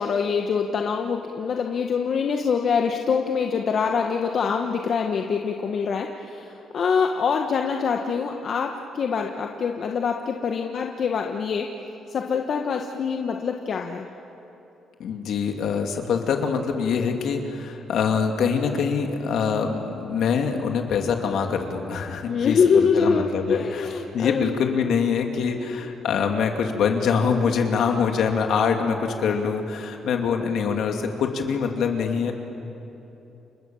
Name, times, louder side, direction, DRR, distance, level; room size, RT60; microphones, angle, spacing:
voice 1, 0.0-11.7 12.1-14.1 22.2-24.6, left 6 dB, 55° left, 3 dB, 1.4 m, -24 dB
voice 2, 15.0-23.9 24.1-32.3, left 6 dB, 75° left, 3 dB, 2.8 m, -24 dB
29.5 x 26.0 x 7.3 m, 2.9 s
cardioid pair, 90°, 0 cm